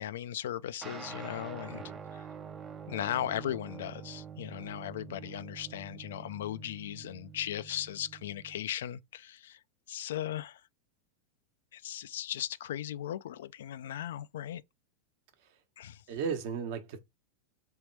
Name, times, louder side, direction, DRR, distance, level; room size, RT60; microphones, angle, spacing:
voice 1, 0.0-1.8 2.1-2.3 2.9-9.6 9.9-10.6 11.7-14.6 15.8-16.0, left 11 dB, 80° left, 0.3 m, -37 dB
sound 1, 0.8-8.6, right 7 dB, 25° right, 0.5 m, -46 dB
voice 2, 16.1-17.0, right 6 dB, 60° right, 1.1 m, -35 dB
3.4 x 3.1 x 4.5 m
supercardioid pair, 125°, 0 cm